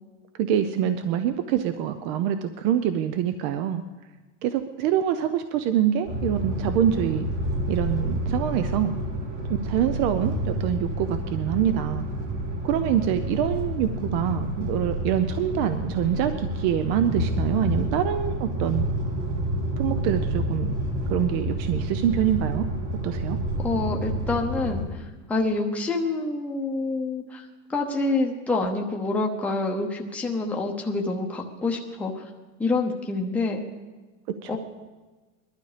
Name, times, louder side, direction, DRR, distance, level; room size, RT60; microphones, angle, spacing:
voice 1, 0.4-3.8 4.4-7.3 7.7-8.9 9.6-12.1 12.6-18.8 19.8-20.7 21.1-22.7 23.0-23.4 34.4-34.6, right 10 dB, 40° right, 10 dB, 0.6 m, -25 dB
sound 1, 6.0-24.8, right 1 dB, 65° right, 3.8 m, -29 dB
voice 2, 23.6-32.2 32.6-33.6 34.5-34.6, left 3 dB, 5° left, 0 dB, 0.9 m, -27 dB
20.0 x 12.0 x 5.0 m, 1.2 s
supercardioid pair, 165°, 39 cm